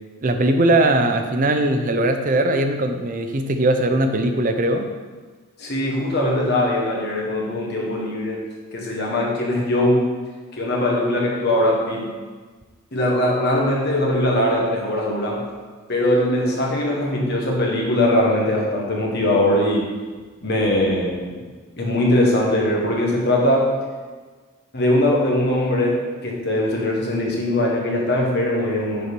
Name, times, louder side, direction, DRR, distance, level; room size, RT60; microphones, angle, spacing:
voice 1, 0.2-4.9, right 1 dB, 40° right, 6 dB, 0.5 m, -20 dB
voice 2, 5.6-8.4 8.7-10.1 10.5-12.1 12.9-15.4 15.9-19.9 20.4-21.4 21.8-23.7 24.7-29.1, left 1 dB, 50° left, -2 dB, 1.3 m, -21 dB
6.9 x 4.5 x 5.1 m, 1.4 s
head